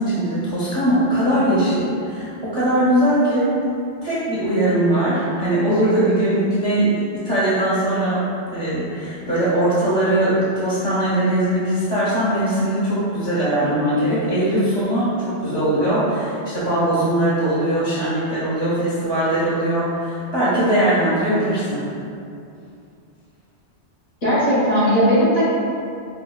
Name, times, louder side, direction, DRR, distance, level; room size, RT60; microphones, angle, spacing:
voice 1, 0.0-3.5 4.0-8.2 8.5-21.8, right 1 dB, 30° right, -11 dB, 0.6 m, -20 dB
voice 2, 24.2-25.5, equal, 55° left, -11 dB, 1.4 m, -17 dB
4.7 x 2.3 x 2.3 m, 2.6 s
omnidirectional pair, 1.2 m